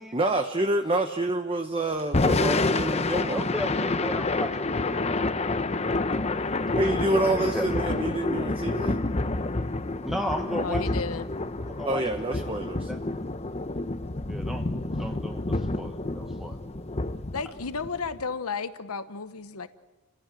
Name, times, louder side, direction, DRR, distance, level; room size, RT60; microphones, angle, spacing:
voice 1, 0.1-3.5 6.7-9.0 11.8-12.9, right 2 dB, 25° right, 5 dB, 1.0 m, -27 dB
Thunder / Rain, 2.0-18.2, left 2 dB, 30° left, 0.8 m, -28 dB
voice 2, 3.3-5.2 7.5-7.7 10.0-10.8 11.6-12.0 12.3-12.6 12.9-13.0 14.2-14.6 15.0-16.6, equal, ahead, 2 dB, 1.1 m, -35 dB
voice 3, 10.4-11.3 17.3-19.7, left 5 dB, 85° left, 11 dB, 1.0 m, -33 dB
29.0 x 16.5 x 7.7 m, 1.2 s
head